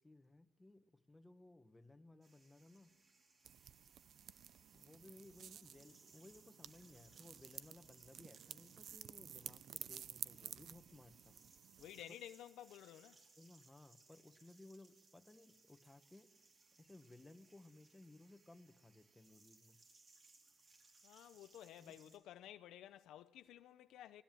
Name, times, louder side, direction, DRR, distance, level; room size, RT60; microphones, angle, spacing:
voice 1, 0.0-2.9 4.7-11.4 13.4-16.4 16.8-19.8 21.8-22.2, left 2 dB, 15° left, 1.7 m, -61 dB
sound 1, 2.2-22.2, right 3 dB, 45° right, 4.6 m, -69 dB
sound 2, 3.4-12.0, right 9 dB, 70° right, 0.6 m, -53 dB
voice 2, 11.8-13.2 21.0-24.2, left 12 dB, 85° left, 0.7 m, -54 dB
20.0 x 17.5 x 9.2 m
cardioid pair, 90°, 0 cm